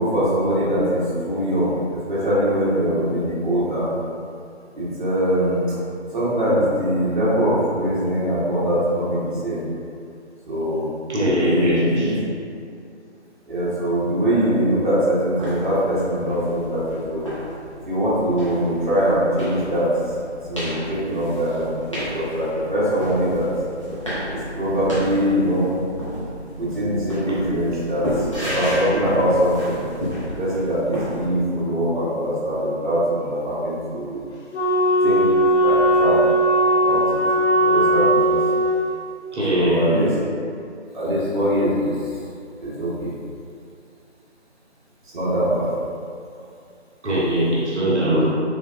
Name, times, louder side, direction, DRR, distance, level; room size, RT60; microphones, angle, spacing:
voice 1, 0.0-1.7 2.1-3.9 4.8-5.6 6.1-9.6 10.5-10.9 11.4-12.2 13.5-17.3 17.9-19.9 20.5-21.8 22.1-23.5 24.3-25.7 26.6-28.1 28.5-29.8 30.4-34.2 35.0-35.3 35.6-36.2 36.9-37.2 37.6-38.4 39.5-40.1 40.9-41.9 42.6-43.1 45.1-45.7, equal, 45° right, -10 dB, 0.8 m, -22 dB
voice 2, 11.1-12.2 27.3-27.4 39.3-40.1 47.0-48.3, equal, 75° right, -6 dB, 0.8 m, -21 dB
sound 1, 15.3-31.3, equal, 30° left, 0.6 m, -32 dB
Wind instrument woodwind instrument, 34.5-38.8, right 1 dB, 70° left, 0.6 m, -18 dB
3.3 x 2.1 x 2.3 m, 2.4 s
figure-of-eight pair, 155°, 35 cm